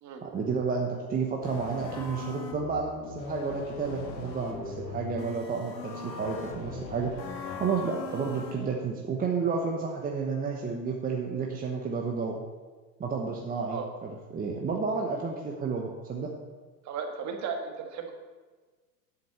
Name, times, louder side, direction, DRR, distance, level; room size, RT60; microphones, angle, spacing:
voice 1, 0.2-7.1 7.6-12.4 13.0-16.3, right 5 dB, 15° right, 0 dB, 1.1 m, -31 dB
sound 1, 1.4-8.8, left 4 dB, 85° left, 2.0 m, -39 dB
voice 2, 16.8-18.1, right 6 dB, 35° right, 4 dB, 1.7 m, -35 dB
7.9 x 7.8 x 6.9 m, 1.4 s
hypercardioid pair, 115°, 50 cm